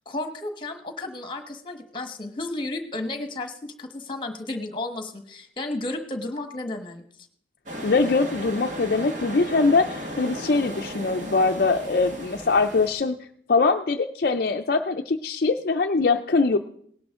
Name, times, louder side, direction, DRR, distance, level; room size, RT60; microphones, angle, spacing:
voice 1, 0.0-7.0, left 2 dB, 25° left, 6 dB, 1.3 m, -33 dB
sound 1, 7.7-12.9, equal, 45° right, 1.8 m, -35 dB
voice 2, 7.8-13.2 13.5-16.6, left 3 dB, 55° left, 4 dB, 0.5 m, -22 dB
18.0 x 11.0 x 3.7 m, 0.64 s
head